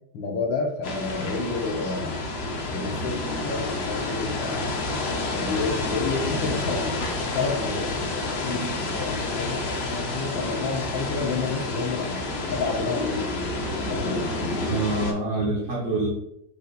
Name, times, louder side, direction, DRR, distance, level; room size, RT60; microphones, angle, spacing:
voice 1, 0.1-2.3 2.7-4.7 5.3-7.0 7.3-8.1 8.4-12.2 12.5-14.8, left 4 dB, 75° left, 1 dB, 1.5 m, -30 dB
sound 1, 0.8-15.1, left 2 dB, 55° left, 0.7 m, -29 dB
voice 2, 14.6-16.1, right 2 dB, 50° right, -3 dB, 1.1 m, -26 dB
5.4 x 2.4 x 3.9 m, 0.77 s
omnidirectional pair, 2.1 m